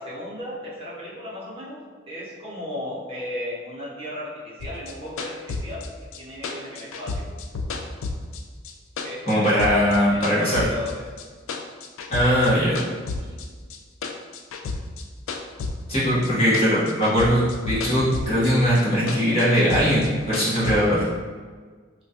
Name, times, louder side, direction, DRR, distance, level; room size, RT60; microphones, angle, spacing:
voice 1, 0.0-1.8 2.1-7.3 9.0-11.0 13.1-13.4, left 1 dB, 30° right, -7 dB, 0.7 m, -35 dB
sound 1, 4.6-8.7 9.0-10.9 11.2-12.5 12.8-16.3 16.5-18.5 18.8-20.8, left 3 dB, 85° left, 0.3 m, -31 dB
voice 2, 9.3-10.6 12.1-12.8 15.9-21.0, equal, 30° left, -10 dB, 1.0 m, -20 dB
3.0 x 2.2 x 2.7 m, 1.5 s
head